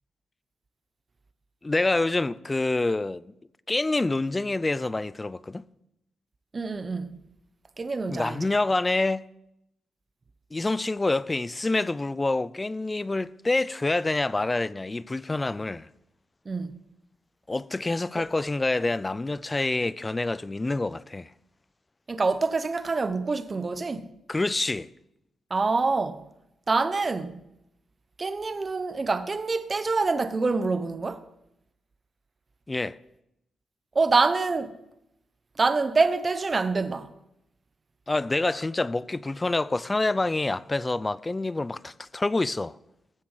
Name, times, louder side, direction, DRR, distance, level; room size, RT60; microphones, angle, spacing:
voice 1, 1.6-3.3 3.7-5.7 8.1-9.3 10.5-15.9 17.5-21.3 24.3-24.9 32.7-33.0 38.1-42.8, left 2 dB, 20° left, 0.5 m, -27 dB
voice 2, 6.5-7.2 7.8-8.5 16.5-16.8 22.1-24.1 25.5-26.2 26.7-27.4 28.2-31.2 33.9-34.7 35.6-37.1, right 3 dB, 35° right, 1.0 m, -26 dB
15.5 x 7.5 x 7.4 m
cardioid pair, 90°, 0 cm